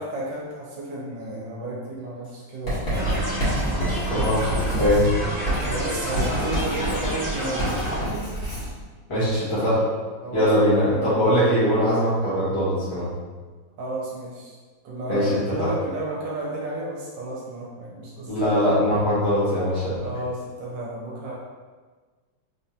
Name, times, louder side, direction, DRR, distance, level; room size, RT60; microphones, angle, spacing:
voice 1, 0.0-3.1 5.6-8.3 9.4-9.7 10.2-12.2 13.8-14.6 14.8-18.3 20.0-21.3, right 2 dB, 70° right, -5 dB, 1.4 m, -33 dB
Writing, 2.7-8.7, right 1 dB, 35° left, 1.8 m, -28 dB
sound 1, 2.9-8.0, equal, 20° right, 1.1 m, -29 dB
voice 2, 4.1-5.0 9.1-9.8 10.3-13.1 15.1-15.7 18.3-20.0, equal, 15° left, -12 dB, 1.3 m, -21 dB
3.7 x 3.3 x 2.8 m, 1.4 s
omnidirectional pair, 2.1 m